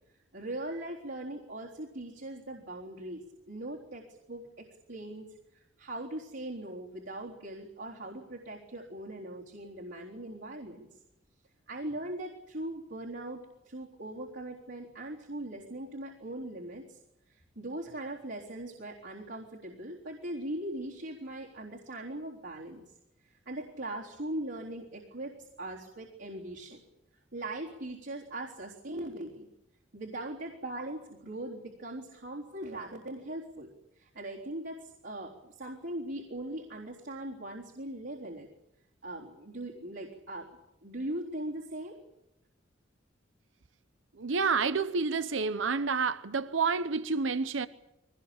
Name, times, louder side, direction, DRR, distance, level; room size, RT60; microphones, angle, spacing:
voice 1, 0.3-5.3 5.5-10.9 11.7-17.0 17.3-22.8 23.2-26.8 27.3-29.5 29.9-33.7 34.0-38.5 39.0-42.0, right 1 dB, 65° right, 3.9 m, -40 dB
voice 2, 44.2-47.7, right 4 dB, 85° right, 0.8 m, -29 dB
23.0 x 19.5 x 8.8 m
head